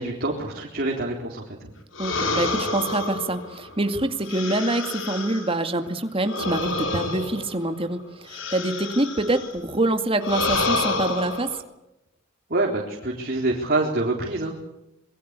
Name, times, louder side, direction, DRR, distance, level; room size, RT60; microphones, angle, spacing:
voice 1, 0.0-1.7 12.5-14.6, right 2 dB, 50° right, 0 dB, 4.0 m, -26 dB
sound 1, 2.0-5.6 6.2-9.6 10.2-11.6, left 3 dB, 70° left, 4.3 m, -29 dB
voice 2, 2.0-11.5, right 1 dB, 30° right, 7 dB, 2.2 m, -25 dB
26.5 x 22.5 x 8.4 m, 0.86 s
head